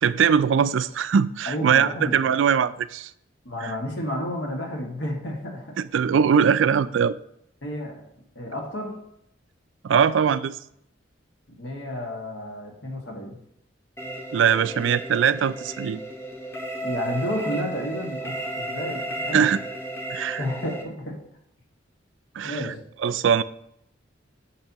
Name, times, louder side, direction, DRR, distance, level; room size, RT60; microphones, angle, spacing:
voice 1, 0.0-3.1 3.6-3.7 5.9-7.2 9.8-10.6 14.3-16.0 19.3-19.6 20.1-20.4 22.4-22.7 23.0-23.4, right 7 dB, 70° right, 0.3 m, -21 dB
voice 2, 1.5-2.3 3.5-5.8 7.6-8.0 8.4-8.9 11.6-13.4 16.8-19.5 20.4-21.2 22.4-22.8, left 1 dB, 65° left, 1.9 m, -31 dB
sound 1, 14.0-20.8, right 2 dB, 15° left, 0.9 m, -34 dB
8.8 x 6.5 x 2.9 m
head